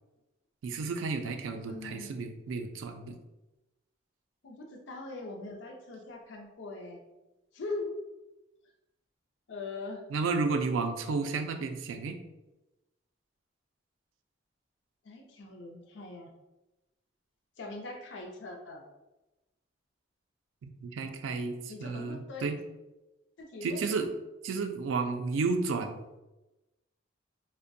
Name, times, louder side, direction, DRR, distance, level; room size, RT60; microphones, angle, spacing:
voice 1, 0.6-3.1 10.1-12.2 20.6-22.6 23.6-24.1 24.4-26.0, right 4 dB, 85° right, 6 dB, 0.3 m, -32 dB
voice 2, 1.7-2.1 4.4-7.0 7.5-7.9 9.5-10.0 15.0-16.3 17.6-18.9 21.7-22.5 23.4-23.9, left 3 dB, 70° left, 2 dB, 0.5 m, -41 dB
2.5 x 2.1 x 2.5 m, 1.0 s
head